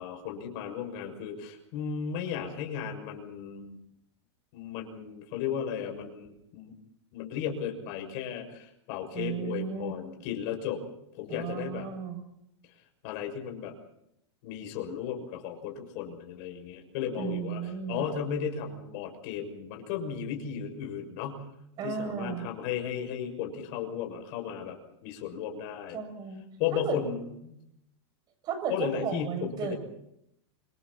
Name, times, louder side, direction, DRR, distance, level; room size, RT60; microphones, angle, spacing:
voice 1, 0.0-3.8 4.5-6.8 7.1-10.8 11.2-11.9 13.0-13.7 14.4-21.4 21.8-24.8 25.0-26.0 26.6-27.6 28.7-29.7, left 8 dB, 45° left, 3 dB, 6.5 m, -35 dB
voice 2, 9.2-9.9 11.3-12.3 17.2-18.0 21.8-22.5 25.9-26.4 26.7-27.0 28.4-29.7, right 6 dB, 30° right, 6 dB, 6.8 m, -34 dB
29.5 x 27.0 x 4.3 m, 0.79 s
supercardioid pair, 150°, 15 cm